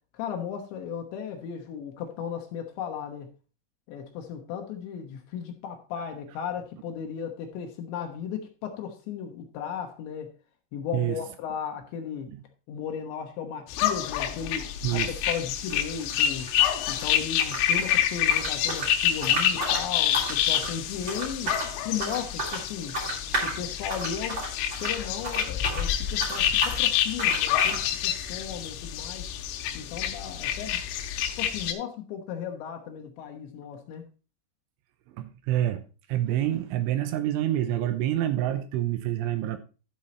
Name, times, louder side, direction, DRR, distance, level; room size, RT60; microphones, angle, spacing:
voice 1, 0.1-3.3 3.9-10.3 10.7-12.3 12.7-16.5 16.9-21.5 21.9-23.0 23.4-24.4 24.8-29.3 29.7-30.8 31.4-34.1, left 8 dB, 70° left, 3 dB, 3.1 m, -36 dB
sound 1, 13.7-31.7, left 10 dB, 90° left, 3.6 m, -27 dB
sound 2, 14.0-14.2 14.5-17.1 17.3-25.9 26.1-26.8 27.2-27.8, right 1 dB, 30° right, 2.9 m, -34 dB
voice 2, 35.2-35.8 36.1-39.6, right 12 dB, 80° right, 10 dB, 3.0 m, -27 dB
12.5 x 5.5 x 4.1 m, 0.33 s
omnidirectional pair, 5.9 m